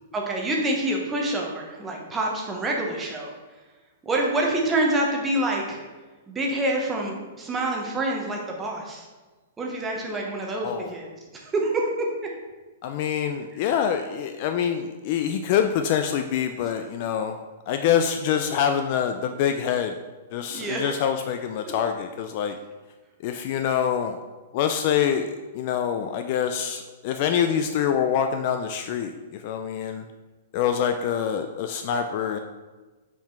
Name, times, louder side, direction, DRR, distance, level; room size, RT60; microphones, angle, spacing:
voice 1, 0.1-3.3 4.0-5.8 6.3-9.1 9.6-11.1 11.3-12.3 20.5-20.9, right 1 dB, 10° right, -1 dB, 0.8 m, -27 dB
voice 2, 12.8-17.4 17.7-20.0 20.3-22.6 23.2-24.2 24.5-30.0 30.5-32.4, left 8 dB, 30° left, 7 dB, 0.3 m, -25 dB
5.8 x 4.6 x 4.4 m, 1.3 s
hypercardioid pair, 180°, 0 cm